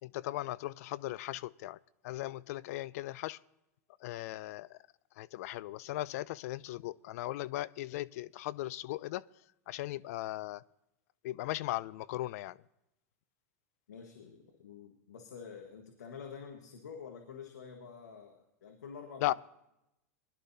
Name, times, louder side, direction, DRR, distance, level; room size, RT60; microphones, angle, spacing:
voice 1, 0.0-3.4 4.0-4.8 5.2-9.2 9.7-10.6 11.2-12.6 19.2-19.3, left 16 dB, 65° left, 21 dB, 0.4 m, -37 dB
voice 2, 13.9-19.3, left 6 dB, 90° left, 4 dB, 1.4 m, -48 dB
21.0 x 11.5 x 2.8 m, 0.87 s
hypercardioid pair, 115°, 9 cm